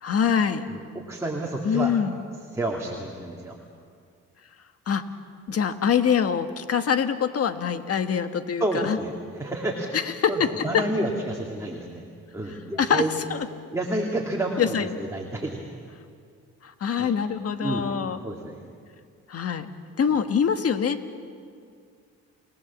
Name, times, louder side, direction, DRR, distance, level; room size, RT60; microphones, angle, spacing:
voice 1, 0.0-0.6 1.6-2.2 4.9-5.0 5.5-9.0 9.9-10.8 12.8-13.0 13.3-13.5 14.6-14.9 16.6-18.2 19.3-19.7 20.0-21.2, left 7 dB, 50° left, 9 dB, 1.5 m, -24 dB
voice 2, 0.7-2.0 2.5-3.6 8.6-10.0 10.3-12.0 12.3-13.1 13.7-15.6 17.0-17.1 17.6-17.9 18.2-18.6, right 1 dB, 10° right, -2 dB, 2.7 m, -30 dB
29.5 x 18.5 x 7.3 m, 2.2 s
cardioid pair, 90°, 30 cm